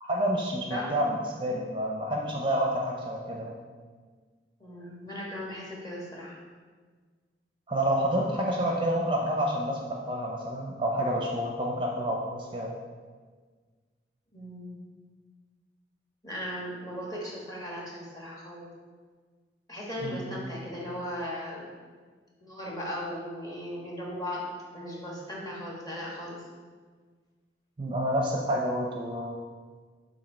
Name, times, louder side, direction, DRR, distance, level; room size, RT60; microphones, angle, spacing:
voice 1, 0.0-3.6 7.7-12.7 20.0-20.4 27.8-29.3, equal, 30° right, -1 dB, 0.6 m, -29 dB
voice 2, 4.6-6.4 14.3-14.8 16.2-18.7 19.7-21.7 22.4-24.4 24.7-26.4, left 1 dB, 20° left, -4 dB, 1.4 m, -37 dB
7.2 x 2.8 x 5.3 m, 1.5 s
head